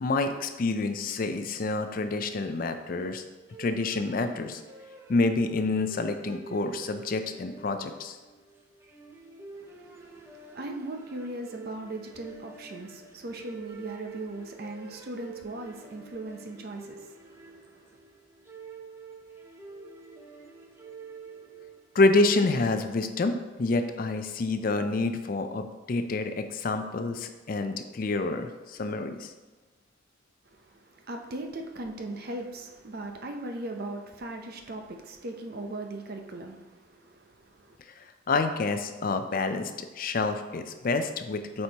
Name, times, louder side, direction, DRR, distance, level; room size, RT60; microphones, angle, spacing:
voice 1, 0.0-3.2 3.6-4.6 5.1-8.2 21.9-29.3 38.3-41.6, left 3 dB, 45° left, 0.4 m, -28 dB
sound 1, 3.5-22.0, right 5 dB, 15° right, 0.5 m, -47 dB
voice 2, 9.7-10.0 10.4-17.6 30.5-30.6 31.1-37.8, right 2 dB, 50° right, 0.6 m, -39 dB
7.8 x 4.4 x 2.8 m
head